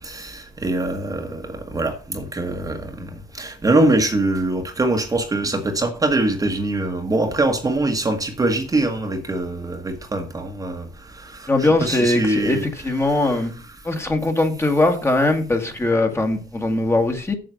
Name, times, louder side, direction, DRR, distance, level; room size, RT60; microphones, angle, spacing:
voice 1, 0.0-10.9 11.1-12.6, right 2 dB, 20° right, 1.4 m, -23 dB
voice 2, 11.5-13.5 13.8-17.4, left 2 dB, 15° left, 1.7 m, -20 dB
7.6 x 7.1 x 6.3 m
cardioid pair, 110°, 17 cm